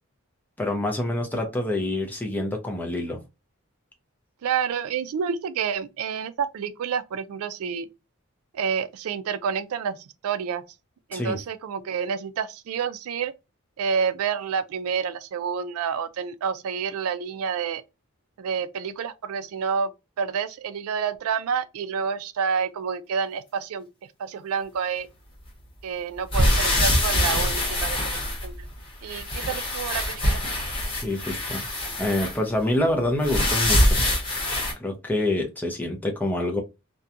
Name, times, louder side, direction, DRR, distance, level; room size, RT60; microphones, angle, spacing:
voice 1, 0.6-3.2 11.1-11.4 30.9-31.7 32.0-34.0 34.8-36.6, left 1 dB, 10° left, 0.4 m, -26 dB
voice 2, 4.4-7.9 8.5-10.6 11.1-13.3 13.8-17.8 18.4-19.9 20.2-23.9 24.2-25.1 25.8-28.0 28.4-28.5 29.0-30.4, right 6 dB, 75° right, 0.3 m, -28 dB
sound 1, 26.3-28.8 29.1-32.4 33.2-34.7, left 1 dB, 25° left, 1.0 m, -24 dB
2.8 x 2.2 x 2.4 m
head